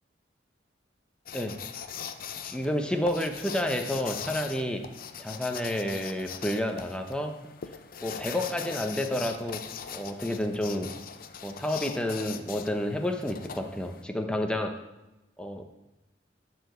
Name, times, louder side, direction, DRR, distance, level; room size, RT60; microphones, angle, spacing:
sound 1, 1.3-14.0, left 7 dB, 50° left, 0.6 m, -41 dB
voice 1, 2.4-4.9 5.2-7.4 8.0-9.6 9.9-10.9 11.4-14.8 15.4-15.6, left 1 dB, 5° left, 4 dB, 0.9 m, -30 dB
11.0 x 4.9 x 6.6 m, 1.0 s
head